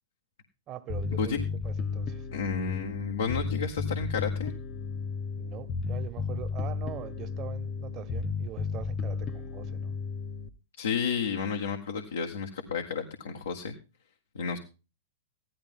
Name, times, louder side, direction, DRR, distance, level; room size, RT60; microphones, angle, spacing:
voice 1, 0.7-2.3 5.3-10.0, right 11 dB, 35° right, 1.4 m, -43 dB
Bass guitar, 0.9-10.5, left 5 dB, 30° left, 1.0 m, -33 dB
voice 2, 2.3-4.5 10.8-13.7 14.3-14.6, left 6 dB, 80° left, 1.7 m, -31 dB
15.0 x 12.0 x 3.7 m
hypercardioid pair, 105°, 0 cm